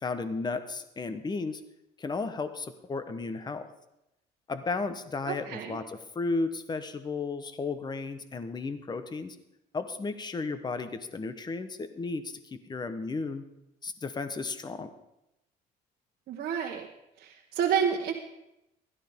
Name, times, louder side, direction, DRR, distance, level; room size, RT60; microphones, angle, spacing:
voice 1, 0.0-1.6 2.0-3.7 4.5-9.4 9.7-13.4 13.8-14.9, left 3 dB, 25° left, 10 dB, 1.1 m, -34 dB
voice 2, 5.3-5.8 16.3-16.9 17.2-18.1, right 7 dB, 60° right, -1 dB, 1.3 m, -29 dB
16.0 x 12.5 x 3.7 m, 0.87 s
cardioid pair, 110°, 17 cm